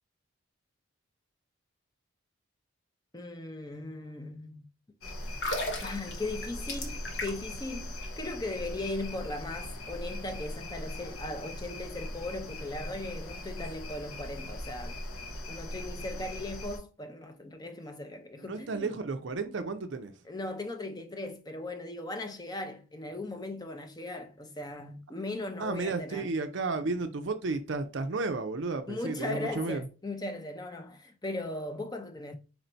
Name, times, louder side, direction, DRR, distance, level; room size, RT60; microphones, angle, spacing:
voice 1, 3.1-4.7 5.8-15.0 15.5-19.0 20.2-26.3 28.9-32.3, left 2 dB, 20° left, 0.6 m, -38 dB
sound 1, 5.0-16.8, left 1 dB, 90° left, 1.0 m, -40 dB
sound 2, 5.3-7.6 7.9-8.1, left 1 dB, 55° left, 1.1 m, -35 dB
voice 2, 18.5-20.1 25.6-29.8, right 3 dB, 60° right, 0.5 m, -33 dB
4.3 x 2.6 x 4.3 m
head